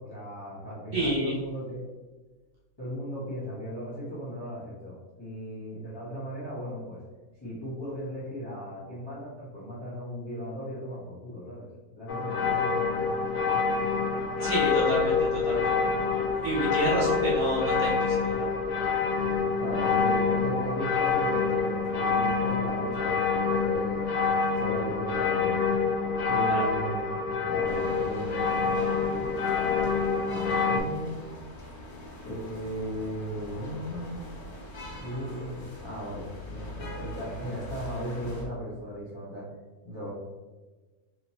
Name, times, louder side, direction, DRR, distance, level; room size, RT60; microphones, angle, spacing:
voice 1, 0.0-1.8 2.8-7.0 7.4-13.1 19.6-24.2 24.5-25.7 26.3-27.2 27.5-31.1 32.2-34.2 35.0-39.5 39.8-40.1, equal, 20° left, -8 dB, 1.0 m, -37 dB
voice 2, 0.9-1.3 14.4-15.9 16.2-18.6 26.5-26.6, right 1 dB, 65° right, -6 dB, 1.6 m, -29 dB
sound 1, 12.1-30.8, left 5 dB, 65° left, 0.8 m, -27 dB
sound 2, 27.6-38.4, left 1 dB, 85° left, 1.7 m, -42 dB
4.2 x 3.1 x 2.7 m, 1.3 s
omnidirectional pair, 1.6 m